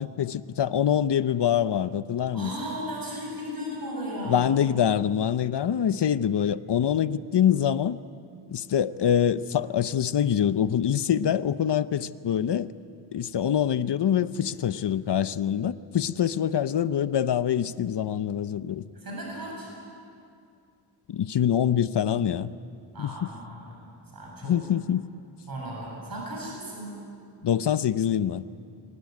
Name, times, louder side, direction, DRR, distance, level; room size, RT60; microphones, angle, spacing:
voice 1, 0.0-2.5 4.3-8.0 8.5-12.7 13.1-18.8 21.1-22.5 23.0-23.1 24.4-25.0 27.4-28.4, left 9 dB, 60° left, 0.7 m, -25 dB
voice 2, 2.3-4.5 14.4-14.8 18.9-19.7 22.9-24.5 25.5-26.9, equal, 45° right, 7.7 m, -36 dB
24.0 x 19.5 x 9.4 m
wide cardioid pair, 165°, 48 cm